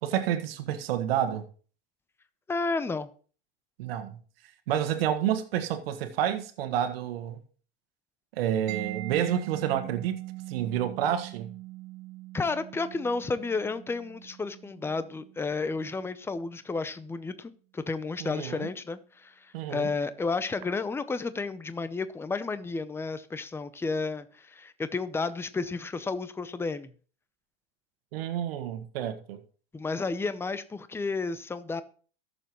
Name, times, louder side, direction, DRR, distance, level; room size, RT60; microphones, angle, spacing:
voice 1, 0.0-1.4 3.8-4.2 4.7-7.4 8.3-10.2 10.5-11.5 18.2-18.7 19.5-19.9 28.1-29.4, right 10 dB, 75° right, 1.6 m, -29 dB
voice 2, 2.5-3.1 12.3-26.9 29.7-31.8, left 4 dB, 10° left, 0.6 m, -32 dB
Mallet percussion, 8.7-16.2, right 19 dB, 55° right, 1.0 m, -42 dB
17.5 x 7.0 x 3.1 m
supercardioid pair, 120°, 30 cm